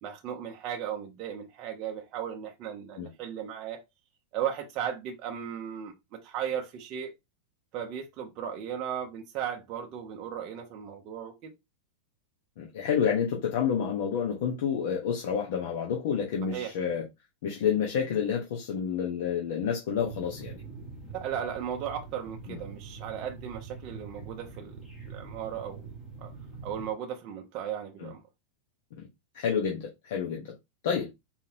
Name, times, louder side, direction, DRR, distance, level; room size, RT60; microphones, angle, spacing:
voice 1, 0.0-3.8 4.3-7.1 7.7-11.5 16.5-16.7 21.1-25.9 26.2-26.3 26.6-28.2, right 9 dB, 30° right, 0.7 m, -36 dB
voice 2, 12.6-17.0 17.4-20.6 22.5-22.6 28.0-28.1 29.0-29.1 29.3-30.5 30.8-31.1, left 7 dB, 55° left, 1.1 m, -29 dB
sound 1, 19.9-26.9, right 4 dB, 5° left, 1.7 m, -44 dB
4.6 x 3.6 x 2.9 m
supercardioid pair, 175°, 0 cm